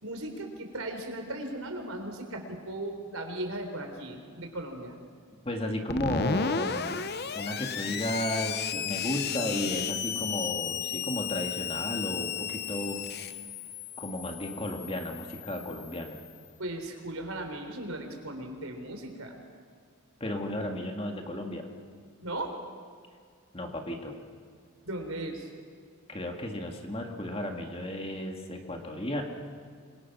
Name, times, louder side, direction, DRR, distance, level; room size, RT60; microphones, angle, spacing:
voice 1, 0.0-5.0 16.6-19.4 22.2-22.5 24.8-25.5, right 1 dB, 75° right, 4 dB, 3.9 m, -37 dB
voice 2, 5.4-7.0 7.3-13.3 14.0-16.2 20.2-21.7 23.5-24.2 26.1-29.2, left 1 dB, 25° left, 3 dB, 2.1 m, -34 dB
Screech, 5.9-16.4, left 6 dB, 45° left, 0.9 m, -34 dB
26.5 x 23.5 x 6.1 m, 2.1 s
head